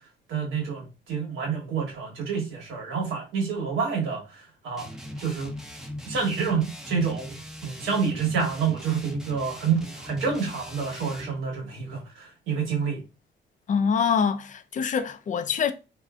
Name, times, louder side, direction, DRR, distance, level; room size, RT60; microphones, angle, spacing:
voice 1, 0.3-4.9 5.2-5.5 6.0-13.0, right 6 dB, 85° right, 1.2 m, -28 dB
sound 1, 4.8-11.4, left 1 dB, 5° right, 0.6 m, -39 dB
voice 2, 13.7-15.7, left 6 dB, 40° left, 0.4 m, -25 dB
3.2 x 2.6 x 2.4 m
cardioid pair, 90°, 20 cm